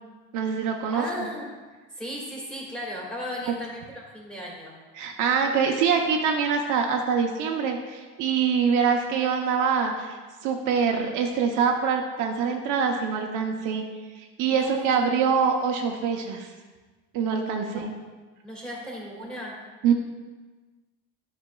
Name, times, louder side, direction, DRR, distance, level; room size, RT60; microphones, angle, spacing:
voice 1, 0.3-1.3 3.5-3.6 5.0-13.8 14.1-16.5 17.1-17.9 19.8-19.9, right 6 dB, 60° right, 2 dB, 0.7 m, -24 dB
voice 2, 0.9-1.5 2.0-4.7 14.5-15.1 17.6-17.9 18.4-19.6, equal, 5° left, -4 dB, 1.9 m, -36 dB
9.5 x 5.9 x 2.2 m, 1.3 s
supercardioid pair, 115°, 34 cm